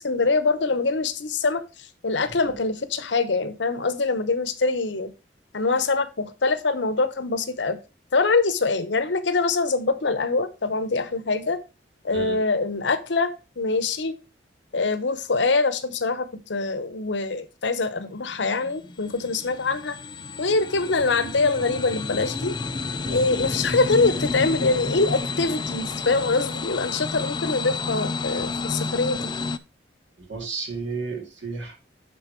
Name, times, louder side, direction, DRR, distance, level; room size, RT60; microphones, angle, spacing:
voice 1, 0.0-1.6 2.0-5.1 5.5-7.8 8.1-11.6 12.0-13.3 13.6-14.1 14.7-20.0 20.4-22.6 23.1-29.3, left 3 dB, 75° left, 0.9 m, -24 dB
voice 2, 2.3-2.6 12.1-12.4 23.1-23.5 30.3-31.8, right 4 dB, 85° right, 2.4 m, -33 dB
sound 1, 18.0-29.6, left 4 dB, 25° left, 0.4 m, -30 dB
9.8 x 4.0 x 4.4 m
head